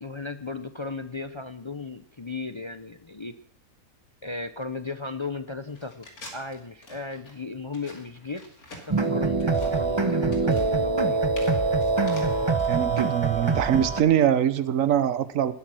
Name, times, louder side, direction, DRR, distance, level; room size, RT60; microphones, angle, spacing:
voice 1, 0.0-3.3 4.2-6.1 6.3-8.4 8.7-11.3, left 3 dB, 40° left, 9 dB, 0.4 m, -36 dB
sound 1, 5.7-12.7, left 1 dB, 80° left, 2.9 m, -46 dB
sound 2, 8.9-14.0, right 3 dB, 20° right, 0.9 m, -24 dB
voice 2, 12.7-15.5, right 10 dB, 65° right, 14 dB, 1.2 m, -23 dB
19.0 x 8.5 x 6.2 m, 0.65 s
omnidirectional pair, 1.5 m